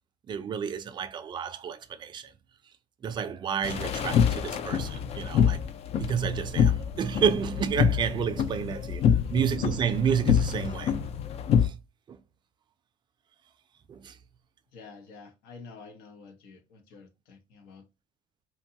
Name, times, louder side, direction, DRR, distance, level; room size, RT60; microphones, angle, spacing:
voice 1, 0.3-2.3 3.0-5.6 5.9-10.9 11.6-11.8 12.1-12.2 13.9-14.2, right 7 dB, 30° right, 0.4 m, -30 dB
sound 1, 3.6-11.7, left 8 dB, 40° left, 0.4 m, -26 dB
voice 2, 14.7-17.9, left 4 dB, 80° left, 0.8 m, -49 dB
2.7 x 2.2 x 2.7 m
cardioid pair, 115°, 16 cm